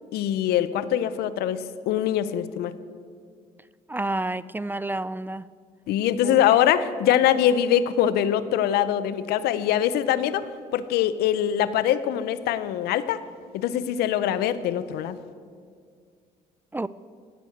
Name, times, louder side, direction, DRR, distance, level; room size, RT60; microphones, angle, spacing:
voice 1, 0.1-2.7 5.9-13.2 13.5-15.2, left 10 dB, 80° left, 0.8 m, -23 dB
voice 2, 3.9-5.5 6.2-6.4 16.7-16.9, right 2 dB, 10° right, 0.4 m, -29 dB
15.5 x 9.1 x 8.0 m
supercardioid pair, 75°, 16 cm